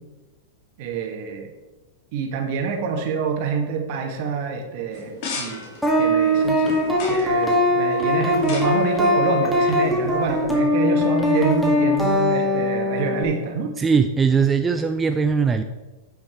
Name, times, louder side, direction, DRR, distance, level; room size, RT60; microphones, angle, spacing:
voice 1, 0.8-1.5 2.1-5.6 6.0-6.7 7.1-13.7, right 5 dB, 55° right, 3 dB, 1.7 m, -26 dB
sound 1, 4.9-10.4, left 3 dB, 55° left, 2.6 m, -38 dB
sound 2, 5.8-13.2, left 1 dB, ahead, 2.1 m, -20 dB
voice 2, 13.8-15.6, right 5 dB, 15° right, 7 dB, 0.4 m, -20 dB
9.6 x 5.7 x 4.5 m, 1.2 s
hypercardioid pair, 105°, 0 cm